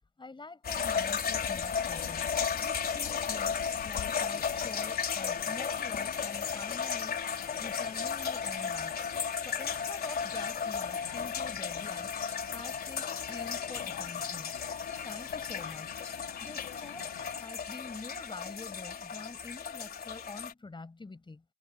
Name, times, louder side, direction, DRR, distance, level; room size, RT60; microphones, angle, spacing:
voice 1, 0.2-2.3 2.6-7.2 7.6-9.0 9.4-12.1 12.5-14.6 14.9-15.9 16.4-21.4, left 3 dB, 25° left, 7.4 m, -46 dB
sound 1, 0.6-20.5, left 6 dB, 50° left, 4.6 m, -34 dB
sound 2, 1.8-17.4, left 13 dB, 80° left, 6.2 m, -49 dB
cardioid pair, 90°, 20 cm